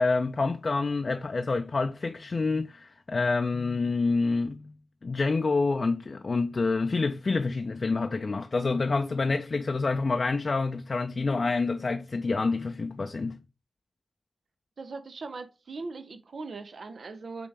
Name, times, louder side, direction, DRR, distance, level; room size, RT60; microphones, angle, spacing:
voice 1, 0.0-4.7 5.0-13.4, left 3 dB, 55° left, 0.4 m, -27 dB
voice 2, 14.8-17.5, right 3 dB, 70° right, 0.6 m, -40 dB
5.3 x 2.8 x 3.3 m
cardioid pair, 40°, 0 cm